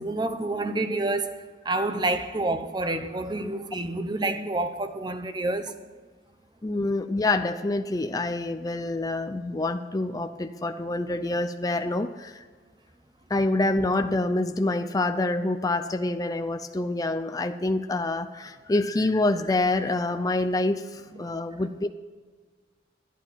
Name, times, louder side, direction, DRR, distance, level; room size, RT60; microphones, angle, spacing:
voice 1, 0.0-5.8 21.1-21.2, right 2 dB, 25° right, 0.8 m, -28 dB
voice 2, 6.6-12.4 13.3-21.9, left 2 dB, 20° left, 0.4 m, -26 dB
11.5 x 11.0 x 5.8 m
head